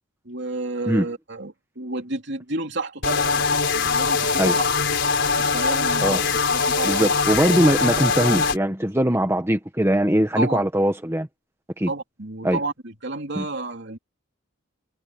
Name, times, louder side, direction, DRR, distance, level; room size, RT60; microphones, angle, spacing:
voice 1, 0.2-3.4 3.7-4.7 5.4-7.1 10.4-10.7 11.9-14.0, right 2 dB, 55° right, 3.3 m, -31 dB
sound 1, 3.0-8.6, left 4 dB, 55° left, 5.1 m, -22 dB
voice 2, 6.8-11.3 11.8-11.9 12.4-12.6 13.4-13.5, right 1 dB, 10° right, 1.3 m, -21 dB
head